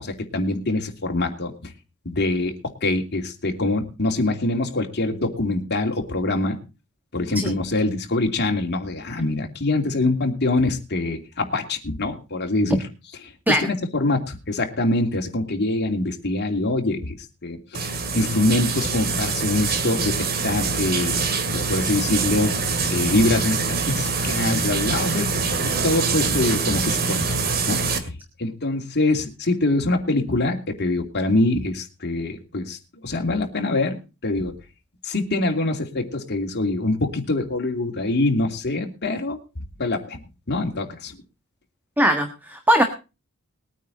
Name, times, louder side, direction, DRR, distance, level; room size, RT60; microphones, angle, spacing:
voice 1, 0.0-1.7 2.0-2.5 2.8-6.6 7.1-12.8 13.6-17.2 17.4-21.2 21.5-22.5 22.9-23.6 23.9-25.3 25.6-27.2 27.7-28.1 28.4-32.8 33.0-34.5 35.0-39.4 39.8-40.2 40.5-41.2, left 2 dB, 50° left, 3 dB, 2.8 m, -24 dB
sound 1, 17.7-28.0, right 4 dB, 45° right, 2.2 m, -24 dB
voice 2, 42.0-42.8, equal, 10° right, 6 dB, 1.4 m, -19 dB
21.0 x 9.3 x 4.2 m, 0.31 s
head